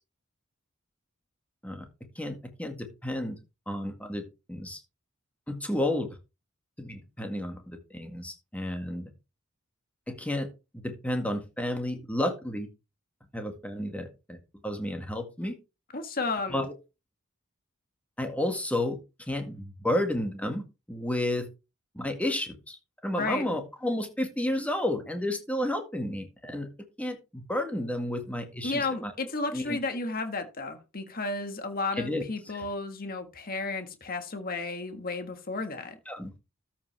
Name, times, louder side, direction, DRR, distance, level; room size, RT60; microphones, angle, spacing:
voice 1, 2.2-3.4 3.7-4.8 5.5-6.1 6.8-9.1 10.1-10.5 10.7-12.7 13.3-14.4 14.6-15.6 16.5-16.7 18.2-19.0 19.3-21.5 21.9-22.8 23.0-26.7 27.0-29.1 29.5-29.8 32.0-32.2 32.5-32.6 36.1-36.3, left 1 dB, 5° left, 1.9 m, -31 dB
voice 2, 15.9-16.7 23.2-23.6 28.6-36.0, left 3 dB, 45° left, 1.6 m, -33 dB
13.0 x 5.9 x 3.4 m
head